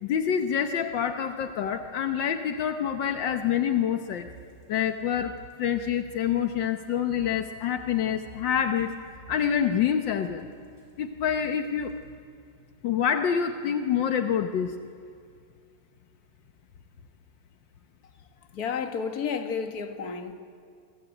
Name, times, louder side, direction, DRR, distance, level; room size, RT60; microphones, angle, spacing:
voice 1, 0.0-4.3 4.7-9.0 9.3-10.5 11.0-11.9 12.8-14.8, left 8 dB, 75° left, 1.7 m, -27 dB
sound 1, 4.2-12.3, right 2 dB, 35° left, 5.8 m, -51 dB
voice 2, 18.5-20.3, left 6 dB, 55° left, 2.0 m, -31 dB
28.0 x 23.5 x 9.0 m
omnidirectional pair, 2.0 m